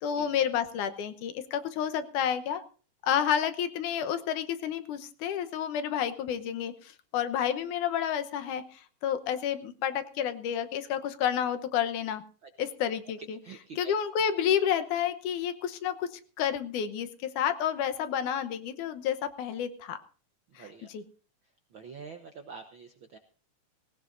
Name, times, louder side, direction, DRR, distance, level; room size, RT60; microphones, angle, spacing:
voice 1, 0.0-2.6 3.0-12.2 12.6-13.4 13.8-20.0 20.6-21.0, left 9 dB, 75° left, 10 dB, 2.4 m, -30 dB
voice 2, 13.2-13.9 20.6-20.9 21.7-23.2, right 5 dB, 65° right, 6 dB, 1.2 m, -46 dB
19.0 x 18.0 x 2.6 m, 0.39 s
omnidirectional pair, 3.7 m